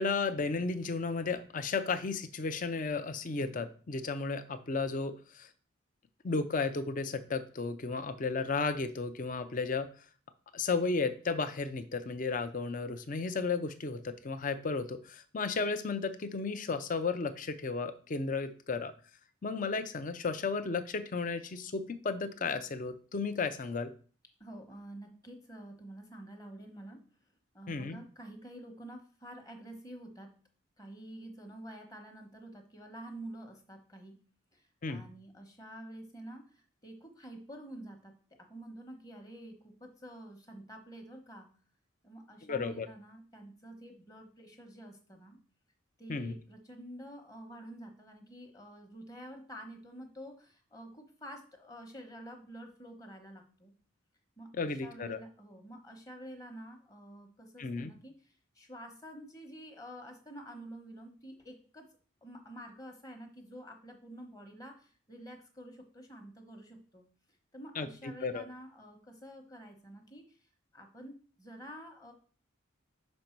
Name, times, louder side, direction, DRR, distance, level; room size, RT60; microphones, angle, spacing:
voice 1, 0.0-5.5 6.2-9.9 10.5-18.9 19.4-23.9 27.7-28.0 34.8-35.0 42.4-42.9 46.1-46.3 54.5-55.2 57.6-57.9 67.7-68.4, left 4 dB, 40° left, 10 dB, 0.5 m, -34 dB
voice 2, 24.4-27.0 27.5-30.3 30.8-34.2 34.5-41.5 42.0-45.4 46.0-53.7 54.4-61.9 62.2-67.1 67.5-70.4 70.7-72.1, right 1 dB, 20° left, 4 dB, 1.0 m, -49 dB
5.3 x 5.2 x 4.5 m, 0.41 s
head